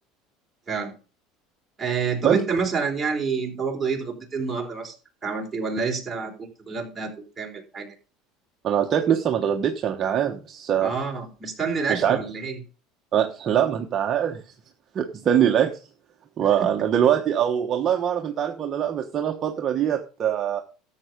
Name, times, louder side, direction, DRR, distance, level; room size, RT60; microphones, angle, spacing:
voice 1, 1.8-4.9 5.2-7.9 10.8-12.6 16.6-16.7, right 5 dB, 10° right, -1 dB, 3.8 m, -28 dB
voice 2, 8.6-10.9 11.9-12.2 13.1-14.4 14.9-15.8 16.4-20.6, right 9 dB, 35° right, 3 dB, 1.2 m, -23 dB
13.0 x 7.6 x 5.2 m, 0.36 s
cardioid pair, 140°, 0 cm